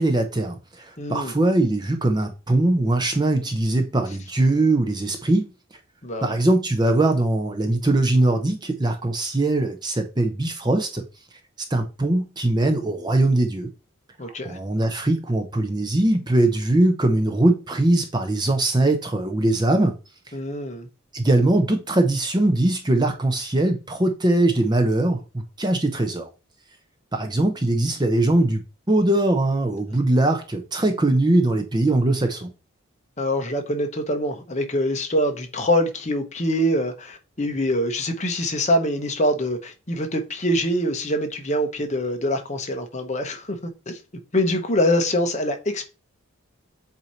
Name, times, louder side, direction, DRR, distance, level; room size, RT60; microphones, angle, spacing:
voice 1, 0.0-5.5 6.2-11.0 11.7-13.7 14.2-19.9 21.1-26.3 27.1-32.5, right 2 dB, 20° right, 0.6 m, -21 dB
voice 2, 1.0-1.3 6.0-6.3 14.2-14.6 20.3-20.9 33.2-43.5 43.9-44.0 44.3-45.9, equal, 30° left, 0.9 m, -24 dB
7.8 x 2.8 x 4.4 m
head